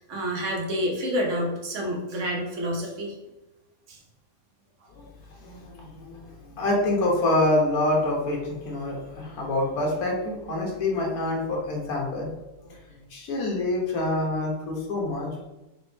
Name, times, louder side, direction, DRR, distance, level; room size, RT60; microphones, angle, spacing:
voice 1, 0.0-3.1 3.9-4.0, equal, 55° right, 0 dB, 1.1 m, -28 dB
voice 2, 5.4-12.3 12.6-15.5, left 2 dB, 65° left, -1 dB, 1.4 m, -26 dB
3.9 x 3.5 x 3.2 m, 1.0 s
omnidirectional pair, 1.7 m